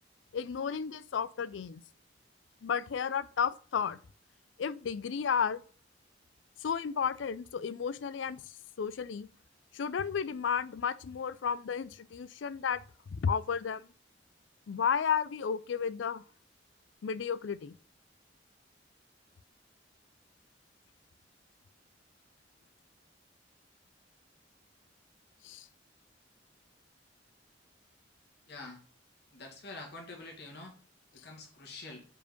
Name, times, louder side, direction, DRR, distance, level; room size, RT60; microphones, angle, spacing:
voice 1, 0.3-1.8 2.6-4.0 4.6-5.6 6.6-9.3 9.7-12.8 13.1-13.8 14.7-16.2 17.0-17.8 25.4-25.7, left 7 dB, 80° left, 0.4 m, -33 dB
voice 2, 28.5-28.8 29.3-30.7 31.1-32.0, left 3 dB, 60° left, 2.1 m, -46 dB
5.0 x 4.6 x 5.1 m
head